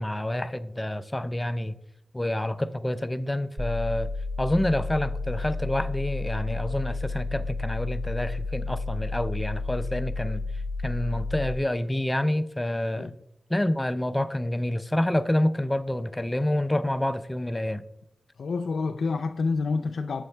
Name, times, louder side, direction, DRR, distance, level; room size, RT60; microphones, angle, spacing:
voice 1, 0.0-1.7 2.1-4.1 4.4-10.4 10.8-13.1 13.5-17.8, left 1 dB, 15° left, 0.4 m, -28 dB
sound 1, 3.6-11.6, left 3 dB, 20° right, 0.7 m, -31 dB
voice 2, 18.4-20.2, left 4 dB, 75° left, 0.4 m, -28 dB
8.1 x 6.3 x 3.2 m
wide cardioid pair, 80°, 0 cm